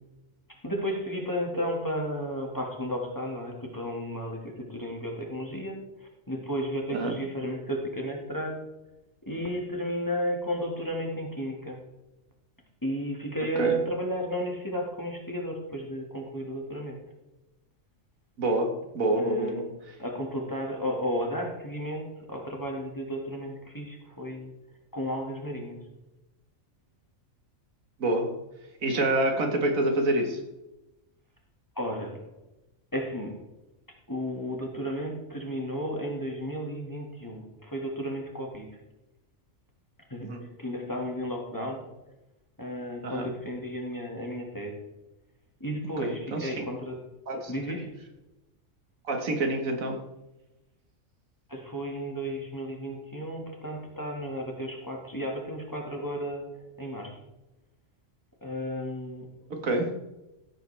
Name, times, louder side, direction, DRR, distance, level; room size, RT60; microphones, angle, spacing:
voice 1, 0.5-5.8 6.3-8.6 9.3-11.8 12.8-17.0 19.2-19.6 20.0-24.5 24.9-25.8 31.8-32.2 32.9-33.4 34.1-38.7 40.1-40.3 40.6-41.8 42.6-44.8 45.6-47.0 47.5-47.9 51.5-56.5 56.8-57.1 58.4-59.3, equal, 15° left, 0 dB, 1.9 m, -33 dB
voice 2, 18.4-19.6 28.0-28.3 28.8-30.4 40.2-40.4 43.0-43.3 46.0-46.6 47.3-47.5 49.1-50.0 59.5-59.9, right 2 dB, 80° right, 4 dB, 1.9 m, -27 dB
15.0 x 8.4 x 3.4 m, 0.97 s
omnidirectional pair, 1.4 m